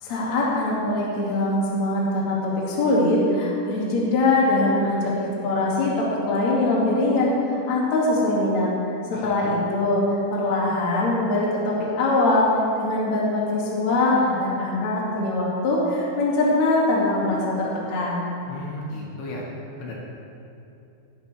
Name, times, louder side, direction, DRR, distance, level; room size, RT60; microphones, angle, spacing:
voice 1, 0.0-8.7 9.1-10.0 10.3-12.5 12.8-18.3, left 2 dB, 45° left, -5 dB, 2.8 m, -22 dB
voice 2, 18.5-19.5 19.8-19.9, left 1 dB, 65° left, -4 dB, 3.8 m, -34 dB
20.5 x 11.0 x 3.4 m, 2.8 s
omnidirectional pair, 5.9 m